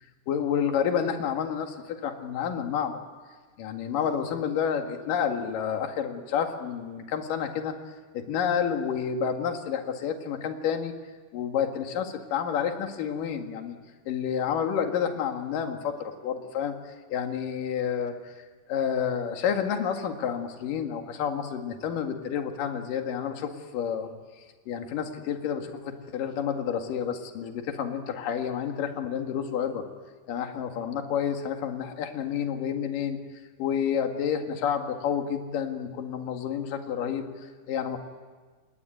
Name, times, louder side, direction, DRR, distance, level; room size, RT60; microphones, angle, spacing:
voice 1, 0.3-3.0 3.6-7.7 8.1-10.9 11.3-13.8 14.1-16.7 17.1-18.4 18.7-24.1 24.7-29.8 30.3-33.2 33.6-38.0, left 8 dB, 55° left, 5 dB, 3.3 m, -29 dB
27.0 x 21.0 x 9.3 m, 1.4 s
omnidirectional pair, 5.1 m